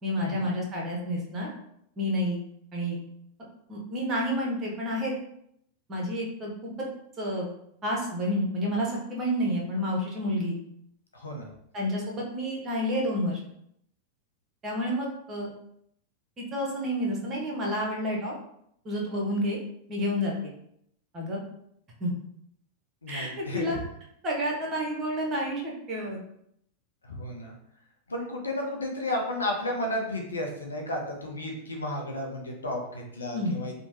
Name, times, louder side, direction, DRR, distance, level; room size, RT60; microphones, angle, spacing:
voice 1, 0.0-1.5 2.0-2.4 2.7-3.0 3.7-5.1 5.9-6.7 7.2-7.5 7.8-10.6 11.7-13.4 14.6-15.5 16.4-18.3 18.8-19.6 19.9-20.5 21.1-21.4 22.0-22.1 23.1-23.8 24.2-26.2 33.3-33.6, equal, 30° right, -2 dB, 0.9 m, -29 dB
voice 2, 11.1-11.5 23.0-23.8 27.0-27.5 28.1-33.7, left 1 dB, 80° left, 1 dB, 0.6 m, -33 dB
2.9 x 2.1 x 2.9 m, 0.73 s
figure-of-eight pair, 90°, 0 cm